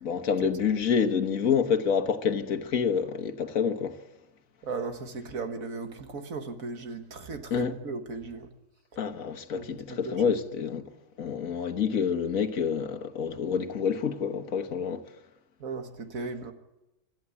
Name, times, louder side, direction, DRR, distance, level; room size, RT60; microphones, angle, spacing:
voice 1, 0.0-4.0 7.5-7.7 9.0-10.9 11.2-15.0, left 6 dB, 90° left, 1.7 m, -28 dB
voice 2, 4.6-8.5 9.5-10.4 15.6-16.5, right 4 dB, 90° right, 2.0 m, -36 dB
26.0 x 13.5 x 8.4 m
omnidirectional pair, 1.4 m